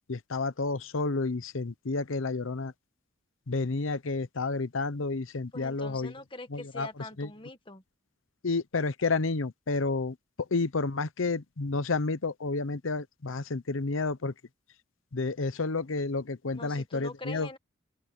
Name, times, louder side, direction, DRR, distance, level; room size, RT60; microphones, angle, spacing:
voice 1, 0.1-2.7 3.5-6.1 6.5-7.3 8.4-14.3 15.1-17.5, left 3 dB, 85° left, 0.8 m, -30 dB
voice 2, 5.5-7.8 16.5-17.6, left 2 dB, 25° left, 1.7 m, -44 dB
open air
head